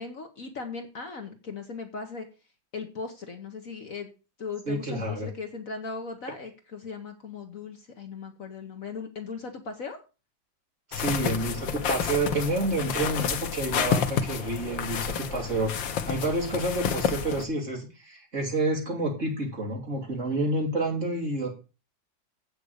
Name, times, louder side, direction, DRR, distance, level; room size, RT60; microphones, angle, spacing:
voice 1, 0.0-2.3 2.7-4.1 4.4-10.0, left 4 dB, 50° left, 5 dB, 1.5 m, -38 dB
voice 2, 4.7-5.3 10.9-21.5, right 2 dB, 40° right, -1 dB, 3.3 m, -29 dB
sound 1, 10.9-17.4, left 7 dB, 85° left, 1.7 m, -30 dB
8.4 x 6.4 x 6.5 m, 0.32 s
omnidirectional pair, 2.0 m